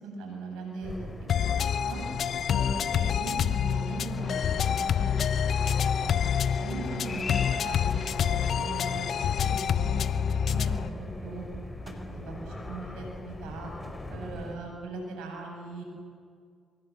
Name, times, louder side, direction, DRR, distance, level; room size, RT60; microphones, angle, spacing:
voice 1, 0.0-1.0 1.3-2.0 2.5-2.7 2.9-5.1 5.6-6.2 6.6-7.2 7.5-9.1 9.4-11.4 12.1-13.7 14.1-15.8, right 3 dB, 85° right, 1 dB, 7.8 m, -39 dB
sound 1, 0.8-14.6, left 1 dB, 20° left, 4.4 m, -41 dB
sound 2, 1.3-10.9, left 8 dB, 65° left, 0.8 m, -27 dB
sound 3, 4.2-9.5, left 3 dB, 40° left, 3.6 m, -41 dB
27.0 x 24.0 x 7.6 m, 2.2 s
supercardioid pair, 60°, 0 cm